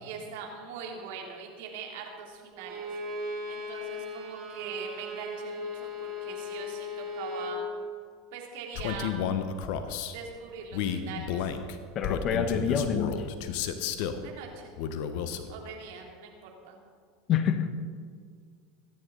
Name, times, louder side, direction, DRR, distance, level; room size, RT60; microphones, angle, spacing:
voice 1, 0.0-2.9 3.5-7.7 8.3-9.2 10.1-11.5 14.2-14.7 15.5-16.8, right 5 dB, 65° right, 1 dB, 3.2 m, -42 dB
Bowed string instrument, 2.6-7.6, left 2 dB, 40° right, 3.7 m, -37 dB
Male speech man speaking, 8.7-10.1 10.7-14.2 14.8-15.5, left 8 dB, 60° left, 1.2 m, -32 dB
voice 2, 11.9-13.3 17.3-17.7, left 7 dB, 45° left, 9 dB, 1.4 m, -27 dB
24.0 x 11.0 x 4.1 m, 2.1 s
hypercardioid pair, 85°, 0 cm